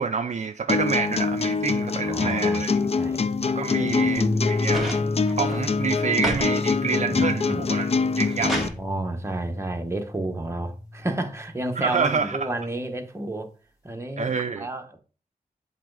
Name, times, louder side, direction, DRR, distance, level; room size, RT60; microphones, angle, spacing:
voice 1, 0.0-2.7 3.4-5.0 5.4-7.9 8.2-8.5 11.8-12.5 14.2-14.7, right 5 dB, 50° right, 0.4 m, -27 dB
sound 1, 0.7-8.7, left 4 dB, 45° left, 0.4 m, -25 dB
voice 2, 2.0-3.2 3.7-4.2 7.1-7.7 8.4-13.5 13.8-15.0, right 1 dB, 20° right, 1.0 m, -31 dB
sound 2, 4.2-12.6, left 2 dB, 20° left, 2.0 m, -33 dB
sound 3, 4.7-6.5 6.9-7.4 7.9-8.8 10.0-10.1, right 1 dB, ahead, 1.6 m, -32 dB
7.5 x 4.1 x 3.8 m
wide cardioid pair, 120°, 15 cm